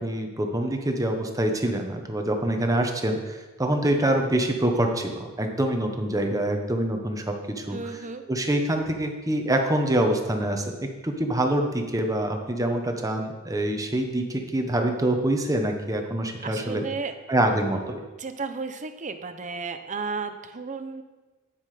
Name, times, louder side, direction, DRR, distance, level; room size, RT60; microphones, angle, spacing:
voice 1, 0.0-7.8 8.3-16.8 17.3-18.0, right 1 dB, 15° right, 3 dB, 1.2 m, -25 dB
voice 2, 7.7-8.2 16.4-17.1 18.2-21.0, right 4 dB, 35° right, 8 dB, 0.8 m, -33 dB
9.7 x 9.7 x 5.1 m, 1.2 s
head